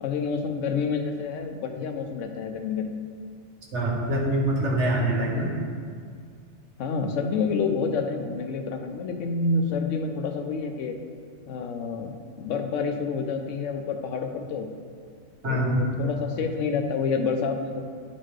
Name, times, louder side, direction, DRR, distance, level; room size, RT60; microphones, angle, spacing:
voice 1, 0.0-3.0 5.3-5.5 6.8-11.0 11.5-14.7 15.4-17.8, left 4 dB, 80° left, 5 dB, 0.9 m, -28 dB
voice 2, 3.7-5.5 15.4-15.8, right 1 dB, 70° right, -1 dB, 1.4 m, -24 dB
10.0 x 4.2 x 3.2 m, 2.1 s
omnidirectional pair, 1.3 m